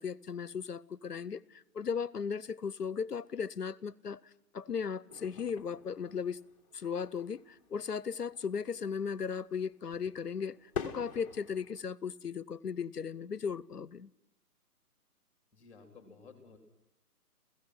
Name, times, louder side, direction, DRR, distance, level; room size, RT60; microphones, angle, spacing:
voice 1, 0.0-4.2 4.5-6.4 6.7-10.6 10.8-14.1, left 6 dB, 80° left, 23 dB, 0.8 m, -36 dB
sound 1, 5.1-11.8, left 7 dB, 20° left, 1.2 m, -46 dB
voice 2, 15.5-16.6, left 4 dB, 5° left, 5 dB, 3.1 m, -54 dB
30.0 x 16.0 x 5.9 m, 0.88 s
figure-of-eight pair, 140°, 47 cm